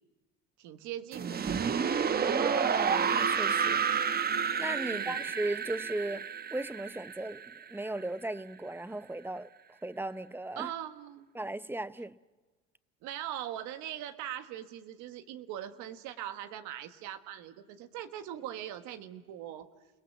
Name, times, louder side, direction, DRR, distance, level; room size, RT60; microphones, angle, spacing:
voice 1, 0.6-1.9 4.9-5.3 10.6-11.3 13.0-19.7, right 11 dB, 80° right, 1.5 m, -41 dB
sound 1, 1.1-8.0, right 7 dB, 30° right, 0.9 m, -30 dB
voice 2, 2.2-3.8 4.6-10.7 11.3-12.1, right 2 dB, 5° right, 0.7 m, -37 dB
29.5 x 18.5 x 7.3 m
supercardioid pair, 90°, 30 cm